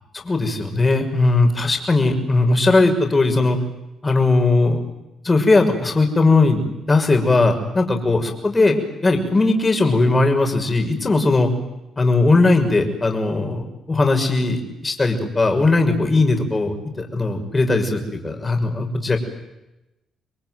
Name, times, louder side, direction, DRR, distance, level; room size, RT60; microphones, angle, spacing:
voice 1, 0.1-3.6 4.0-4.8 5.2-8.7 9.0-11.5 12.0-19.2, left 3 dB, 25° left, 4 dB, 6.2 m, -18 dB
28.5 x 22.0 x 9.3 m, 0.96 s
cardioid pair, 90°, 0 cm